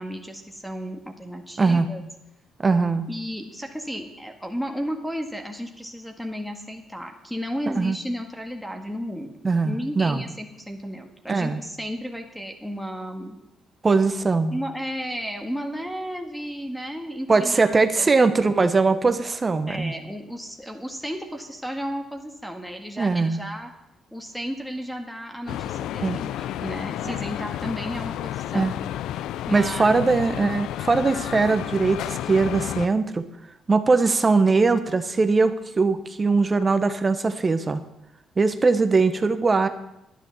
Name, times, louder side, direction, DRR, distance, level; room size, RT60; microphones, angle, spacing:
voice 1, 0.0-2.0 3.1-9.3 9.6-13.4 14.5-18.1 19.7-23.7 24.1-26.3 26.6-28.7 29.5-30.0, equal, ahead, 4 dB, 1.8 m, -33 dB
voice 2, 2.6-3.1 7.8-8.0 9.4-10.2 11.3-11.6 13.8-14.6 17.3-19.9 23.0-23.4 26.0-26.2 27.1-27.2 28.5-28.7 29.5-33.3 33.7-37.8 38.4-39.7, right 4 dB, 30° right, 10 dB, 1.1 m, -21 dB
sound 1, 25.5-32.9, left 12 dB, 85° left, 0.3 m, -31 dB
10.5 x 10.5 x 7.1 m, 0.85 s
cardioid pair, 90°, 0 cm